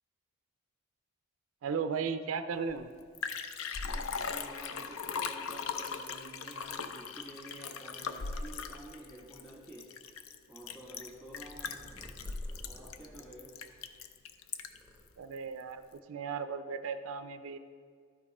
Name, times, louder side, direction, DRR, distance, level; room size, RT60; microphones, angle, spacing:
voice 1, 1.6-2.9 15.2-17.6, right 5 dB, 70° right, 9 dB, 0.4 m, -36 dB
Liquid, 2.7-2.8 3.0-14.9 15.4-15.5, left 5 dB, 70° left, 0.5 m, -39 dB
voice 2, 3.8-9.9 10.5-11.9 12.6-13.6, right 1 dB, 5° left, -3 dB, 1.8 m, -50 dB
Purr, 10.6-14.2 14.5-15.6, equal, 10° right, 0.7 m, -53 dB
12.0 x 5.2 x 4.8 m, 2.1 s
head